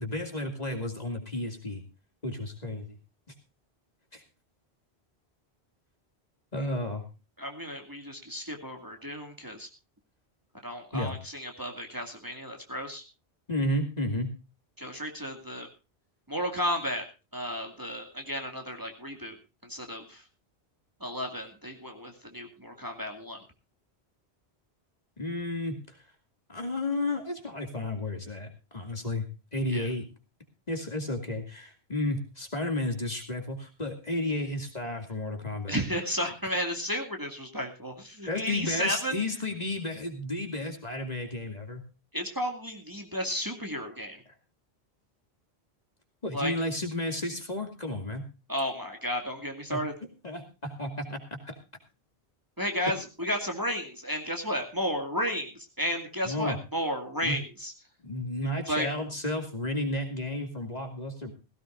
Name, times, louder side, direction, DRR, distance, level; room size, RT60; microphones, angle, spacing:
voice 1, 0.0-1.8 2.2-3.0 4.1-4.2 6.5-7.0 10.9-11.1 13.5-14.3 25.2-26.0 26.5-29.3 29.5-30.0 30.7-35.8 38.3-41.8 46.2-48.2 49.7-49.8 50.2-51.5 56.2-56.6 57.2-57.4 58.0-61.3, left 1 dB, 40° left, 4 dB, 2.7 m, -32 dB
voice 2, 7.4-9.7 10.6-13.0 14.8-15.7 16.3-17.1 17.3-19.4 19.6-20.2 21.0-23.4 29.7-29.9 35.7-39.2 42.1-44.2 46.3-46.5 48.5-49.9 52.6-57.7 58.7-58.9, equal, 20° right, 2 dB, 2.4 m, -33 dB
17.0 x 17.0 x 2.6 m, 0.29 s
omnidirectional pair, 1.1 m